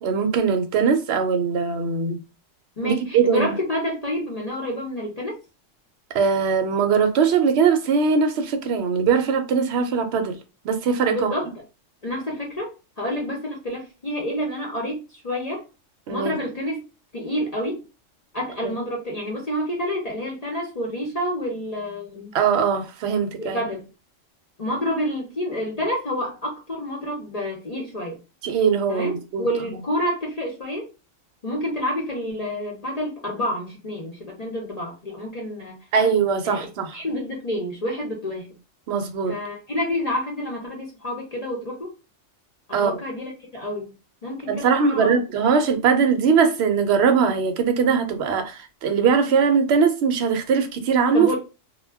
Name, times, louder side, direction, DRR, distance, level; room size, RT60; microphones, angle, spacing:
voice 1, 0.0-2.2 2.8-3.5 6.1-10.4 10.6-11.3 16.1-16.3 18.6-18.7 22.3-23.6 28.4-29.5 35.9-37.0 38.9-39.3 42.7-43.0 44.5-51.3, right 6 dB, 65° right, 0.8 m, -21 dB
voice 2, 2.8-5.4 11.1-11.5 12.0-15.6 16.1-16.8 17.1-17.8 18.3-22.3 23.4-23.9 24.6-28.2 28.9-30.9 31.4-35.8 36.4-36.7 36.9-38.5 39.3-41.9 42.7-43.9 44.2-45.2 51.1-51.4, left 1 dB, 40° left, 0.6 m, -28 dB
2.2 x 2.2 x 3.3 m
omnidirectional pair, 1.3 m